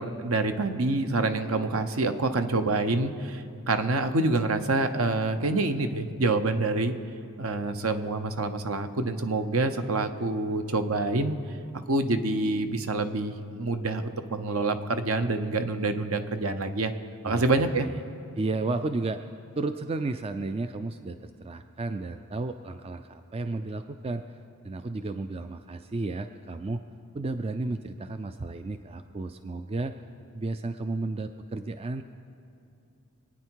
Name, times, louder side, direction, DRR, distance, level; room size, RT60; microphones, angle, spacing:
voice 1, 0.0-6.9 7.4-11.6 11.9-16.9 17.2-17.9, right 2 dB, 65° right, 9 dB, 0.8 m, -27 dB
voice 2, 18.4-19.2 19.6-24.2 24.6-26.8 27.1-29.9 30.3-32.0, right 3 dB, 25° right, 9 dB, 0.3 m, -33 dB
25.0 x 9.5 x 4.6 m, 2.6 s
head